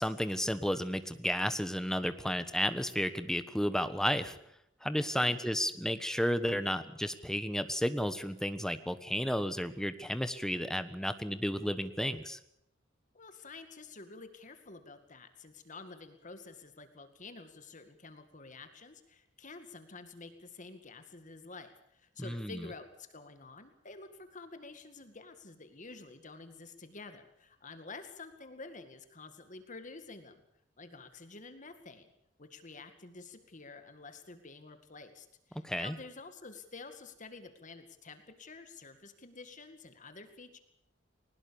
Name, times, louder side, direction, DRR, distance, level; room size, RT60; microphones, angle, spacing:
voice 1, 0.0-4.4 4.8-12.4 22.2-22.6 35.6-36.0, equal, 5° left, 11 dB, 1.3 m, -32 dB
voice 2, 13.1-30.4 30.8-32.1 32.4-40.6, left 3 dB, 40° left, 8 dB, 2.1 m, -49 dB
22.0 x 19.5 x 7.1 m, 0.77 s
head